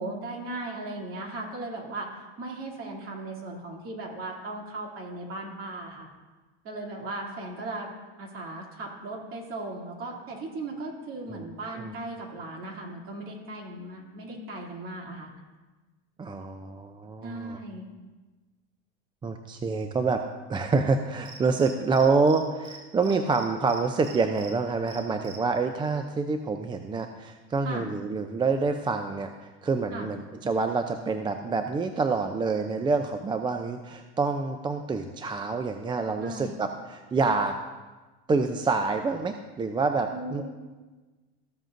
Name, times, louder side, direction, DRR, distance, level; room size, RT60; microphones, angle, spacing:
voice 1, 0.0-6.1 6.6-7.9 8.2-15.3 17.2-17.9 23.1-23.2 27.6-27.9 29.9-30.1 36.2-36.5 40.1-40.4, right 2 dB, 40° right, -2 dB, 2.8 m, -37 dB
voice 2, 16.2-17.6 19.2-20.2 20.5-37.5 38.3-40.4, right 4 dB, 15° right, 6 dB, 0.4 m, -27 dB
Cricket, 21.3-22.4 22.6-22.8 23.0-24.5 24.9-25.4, right 4 dB, 80° right, 3.1 m, -44 dB
14.5 x 7.4 x 2.6 m, 1.3 s
supercardioid pair, 105°, 32 cm